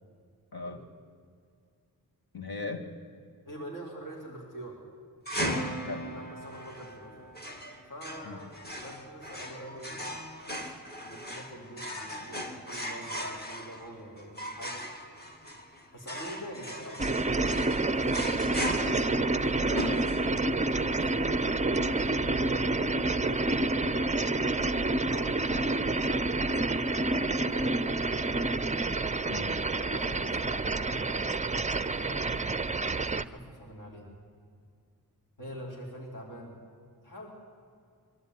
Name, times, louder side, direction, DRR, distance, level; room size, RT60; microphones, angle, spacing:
voice 1, 2.3-2.9 5.4-6.1 8.2-8.4 21.5-21.6 29.3-29.6 30.2-30.5, left 3 dB, 70° left, 4 dB, 2.3 m, -39 dB
voice 2, 3.5-4.8 6.1-7.3 7.9-10.1 11.0-14.8 15.9-17.7 18.3-20.2 20.5-23.4 24.8-27.9 29.8-32.3 33.0-34.1 35.4-36.6 37.0-37.3, right 1 dB, 55° left, -1 dB, 4.1 m, -45 dB
sound 1, 5.3-20.6, equal, 25° left, 2.3 m, -38 dB
sound 2, 17.0-33.2, right 2 dB, 20° right, 0.5 m, -28 dB
23.5 x 13.0 x 9.7 m, 2.3 s
wide cardioid pair, 105°, 38 cm